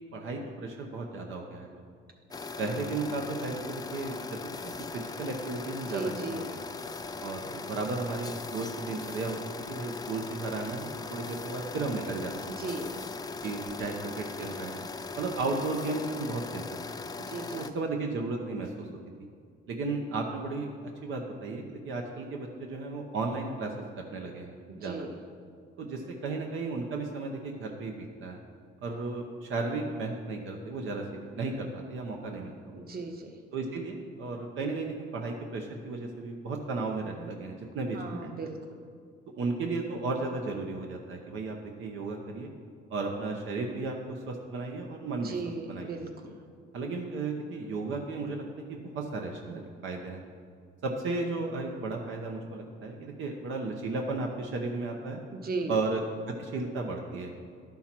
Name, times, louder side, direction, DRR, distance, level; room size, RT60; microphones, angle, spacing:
voice 1, 0.1-1.7 2.6-4.2 4.6-6.1 6.5-6.6 7.2-12.8 13.4-14.9 15.2-16.6 17.5-18.9 19.7-20.7 21.0-25.1 25.8-28.4 28.8-32.8 33.5-38.5 39.4-42.5 42.9-45.3 45.7-46.0 46.7-50.2 50.8-55.2 55.7-56.0 56.4-57.3, right 3 dB, 80° right, 1 dB, 0.9 m, -34 dB
sound 1, 2.3-17.7, left 4 dB, 20° left, 0.5 m, -39 dB
voice 2, 5.9-6.4 12.5-12.9 17.3-17.7 24.7-25.1 32.7-33.3 37.9-38.6 45.2-46.3 55.3-55.7, right 3 dB, 50° right, 3 dB, 1.2 m, -36 dB
11.5 x 5.6 x 4.4 m, 2.2 s
cardioid pair, 90°, 20 cm